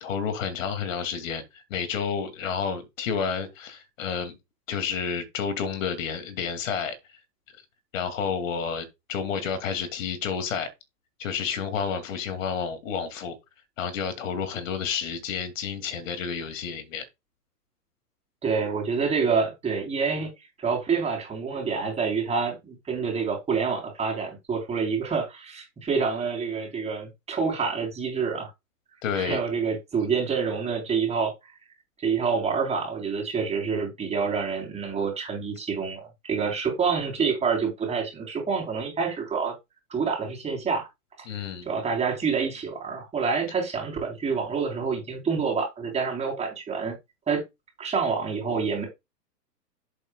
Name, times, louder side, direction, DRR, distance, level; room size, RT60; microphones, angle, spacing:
voice 1, 0.0-4.4 4.7-6.9 7.9-10.7 11.2-13.4 13.8-17.0 29.0-29.4 41.3-41.7, left 6 dB, 50° left, 2.5 m, -30 dB
voice 2, 18.4-20.3 20.6-28.5 29.1-31.3 32.0-36.0 36.3-39.5 39.9-40.9 41.2-41.3 41.7-46.9 47.3-47.4 47.8-48.9, right 5 dB, 15° right, 3.7 m, -27 dB
10.5 x 7.8 x 2.3 m
figure-of-eight pair, 115°, 49 cm